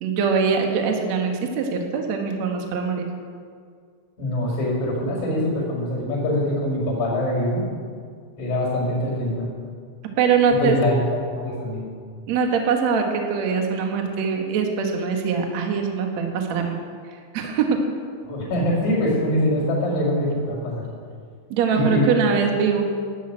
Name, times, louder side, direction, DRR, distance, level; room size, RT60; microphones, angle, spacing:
voice 1, 0.0-3.1 10.2-10.8 12.3-16.8 17.3-17.8 21.5-22.8, right 6 dB, 65° right, 2 dB, 1.7 m, -22 dB
voice 2, 4.2-7.6 8.4-9.4 10.6-10.9 11.4-11.8 18.2-20.8 21.7-22.1, left 1 dB, 40° left, -6 dB, 6.0 m, -23 dB
12.5 x 10.5 x 8.8 m, 2.1 s
omnidirectional pair, 5.5 m